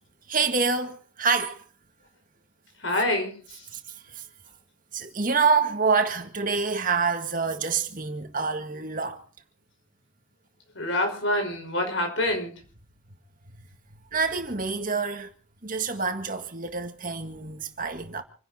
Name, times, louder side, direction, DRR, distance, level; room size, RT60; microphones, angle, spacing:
voice 1, 0.3-1.6 3.7-4.3 4.9-9.2 14.1-15.3 15.6-18.2, right 4 dB, 40° right, 1.8 m, -27 dB
voice 2, 2.8-3.7 10.7-12.5, left 1 dB, 70° left, 5.5 m, -26 dB
27.5 x 11.5 x 4.3 m
head